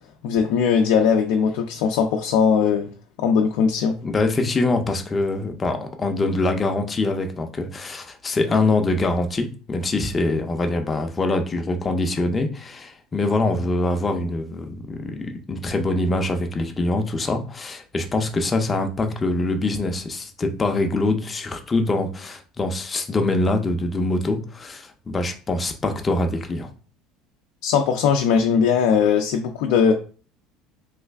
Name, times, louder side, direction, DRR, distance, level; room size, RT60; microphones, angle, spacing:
voice 1, 0.2-2.9 3.2-4.0 27.6-29.9, left 6 dB, 75° left, 3 dB, 0.4 m, -19 dB
voice 2, 4.0-26.7, left 2 dB, 20° left, 5 dB, 0.5 m, -24 dB
3.1 x 2.3 x 3.4 m, 0.38 s
cardioid pair, 145°, 0 cm